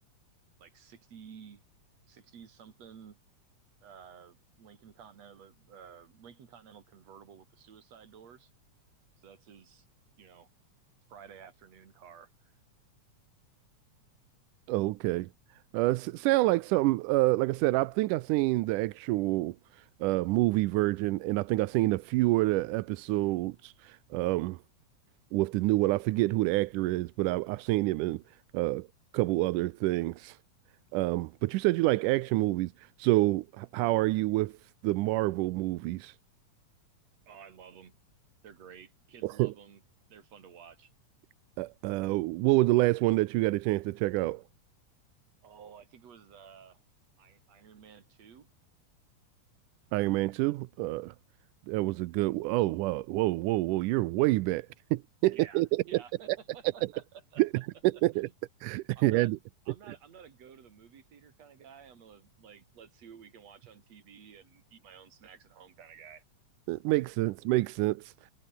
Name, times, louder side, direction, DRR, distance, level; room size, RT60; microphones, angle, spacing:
voice 1, 0.6-1.6 2.1-3.2 3.8-8.5 9.2-9.9 10.2-10.5 11.1-12.5 37.3-38.0 38.4-39.8 40.1-40.9 45.4-46.8 47.2-48.5 55.3-57.4 57.9-58.3 59.0-59.3 59.7-66.2, right 7 dB, 55° right, 3.7 m, -52 dB
voice 2, 14.7-15.3 15.7-19.6 20.0-24.6 25.3-28.2 28.5-28.9 29.1-30.4 30.9-34.6 34.8-36.1 39.2-39.5 41.6-44.4 49.9-51.1 51.7-56.0 57.4-57.5 57.8-58.3 58.6-59.4 66.7-68.1, right 19 dB, 90° right, 2.2 m, -27 dB
omnidirectional pair, 3.6 m